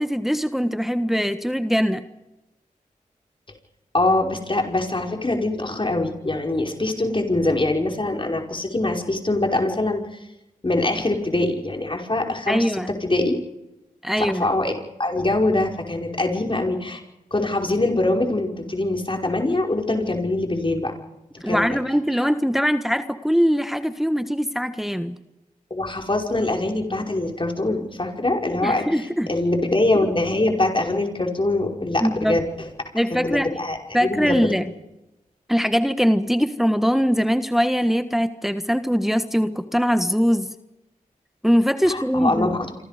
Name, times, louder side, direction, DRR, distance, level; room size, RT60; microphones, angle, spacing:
voice 1, 0.0-2.1 12.5-12.9 14.0-14.5 21.4-25.2 28.6-29.3 32.0-32.4 32.9-33.5 33.9-34.7 35.5-40.5 41.4-42.5, equal, ahead, 9 dB, 1.5 m, -22 dB
voice 2, 3.9-10.0 10.6-13.4 14.2-17.0 17.3-20.9 21.5-21.8 25.7-28.9 29.3-32.5 33.2-34.4 41.9-42.6, left 2 dB, 35° left, 2 dB, 5.3 m, -23 dB
27.0 x 25.5 x 5.2 m, 0.96 s
cardioid pair, 45°, 15 cm